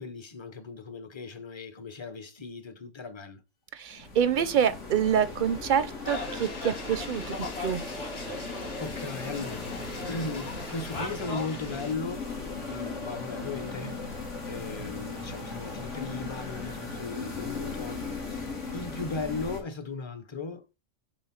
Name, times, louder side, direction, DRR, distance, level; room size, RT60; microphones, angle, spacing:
voice 1, 0.0-3.4 8.3-12.3 12.7-14.1 14.5-18.5 18.7-20.8, left 3 dB, 30° left, 0.6 m, -37 dB
voice 2, 3.8-7.8, right 8 dB, 55° right, 0.6 m, -26 dB
sound 1, 3.9-19.6, left 3 dB, 90° left, 2.3 m, -38 dB
sound 2, 6.0-11.9, left 2 dB, 55° left, 2.0 m, -38 dB
7.2 x 2.5 x 5.7 m
omnidirectional pair, 1.2 m